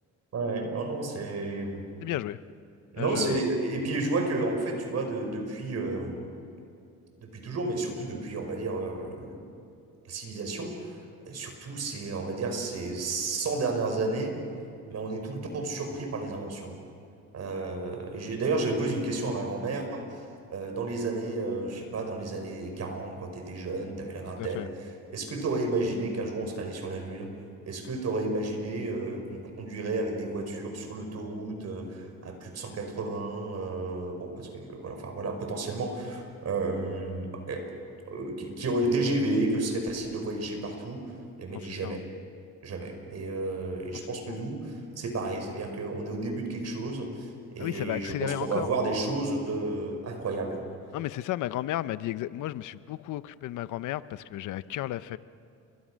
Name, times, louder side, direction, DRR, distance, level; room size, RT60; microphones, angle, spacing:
voice 1, 0.3-1.8 2.9-6.2 7.2-9.4 10.1-11.0 11.3-14.4 14.9-16.7 17.3-20.2 20.5-27.3 27.6-37.6 38.1-41.0 41.4-42.0 42.6-50.6, right 2 dB, 60° right, 4 dB, 5.5 m, -32 dB
voice 2, 2.0-2.4 3.0-3.4 24.4-24.7 41.5-42.0 44.3-44.4 47.6-48.7 50.9-55.2, left 14 dB, 80° left, 15 dB, 0.7 m, -33 dB
29.5 x 24.5 x 6.3 m, 2.5 s
cardioid pair, 90°, 30 cm